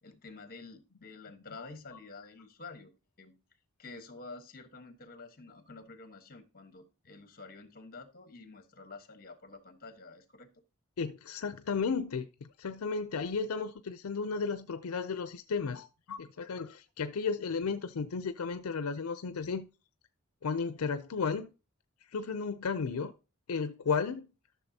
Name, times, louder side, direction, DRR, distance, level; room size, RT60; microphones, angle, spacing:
voice 1, 0.0-2.9 3.2-3.4 3.8-10.5, left 3 dB, 45° left, 1.2 m, -49 dB
voice 2, 11.0-19.7 20.4-21.5 22.1-23.1 23.5-24.3, left 5 dB, 85° left, 0.5 m, -34 dB
12.0 x 6.5 x 2.8 m
head